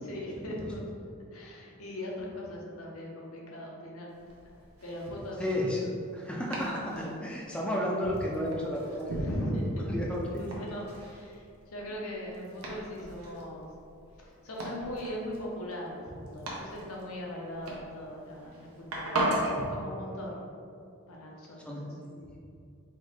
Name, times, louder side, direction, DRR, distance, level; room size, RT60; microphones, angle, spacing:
voice 1, 0.0-4.1 4.8-5.7 8.0-8.2 9.1-13.7 14.2-20.4 21.1-21.8 22.2-22.4, equal, 70° left, -3 dB, 0.8 m, -39 dB
Domestic sounds home sounds, 4.1-19.6, right 1 dB, 80° right, 0.8 m, -39 dB
voice 2, 5.4-10.2 21.7-22.1, left 1 dB, 5° left, -3 dB, 0.4 m, -33 dB
4.4 x 2.7 x 3.4 m, 2.5 s
head